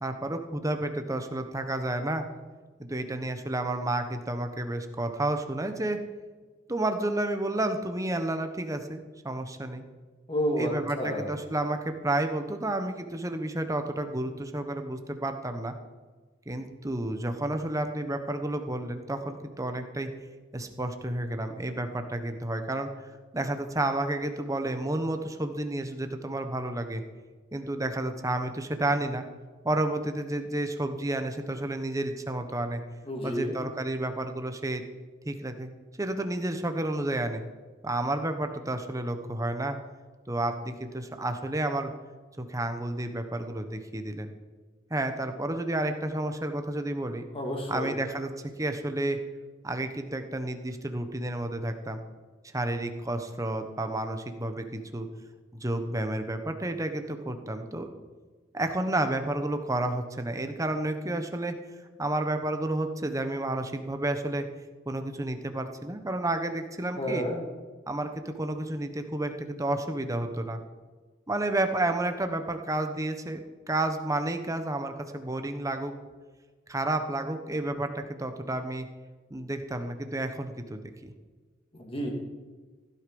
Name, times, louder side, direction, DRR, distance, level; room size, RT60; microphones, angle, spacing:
voice 1, 0.0-2.2 2.8-6.0 6.7-9.8 10.6-15.7 16.5-20.1 20.5-22.9 23.3-27.0 27.5-29.2 29.6-32.8 33.2-34.8 35.2-35.7 36.0-37.4 37.8-39.8 40.3-41.9 42.4-44.3 44.9-47.2 47.7-48.3 48.6-49.2 49.6-52.0 52.5-55.1 55.5-57.9 58.5-61.6 62.0-64.4 64.8-67.2 67.9-70.6 71.3-73.4 73.7-76.1 76.7-78.9 79.3-81.1, right 1 dB, 15° right, 7 dB, 1.1 m, -31 dB
voice 2, 10.3-11.3 33.1-33.6 47.3-47.9 67.0-67.4 81.7-82.1, equal, 30° left, 1 dB, 2.6 m, -30 dB
15.5 x 11.5 x 5.4 m, 1.4 s
head